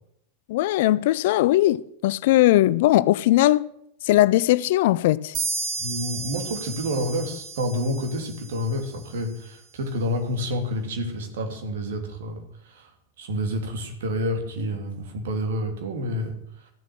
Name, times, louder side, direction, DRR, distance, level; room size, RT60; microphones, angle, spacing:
voice 1, 0.5-3.7 4.0-5.3, left 15 dB, 50° left, 0.4 m, -19 dB
sound 1, 5.3-8.9, right 3 dB, 40° right, 2.9 m, -33 dB
voice 2, 5.8-12.9 13.2-16.3, equal, 60° right, 2.7 m, -29 dB
15.0 x 7.4 x 7.3 m
figure-of-eight pair, 90°, 0 cm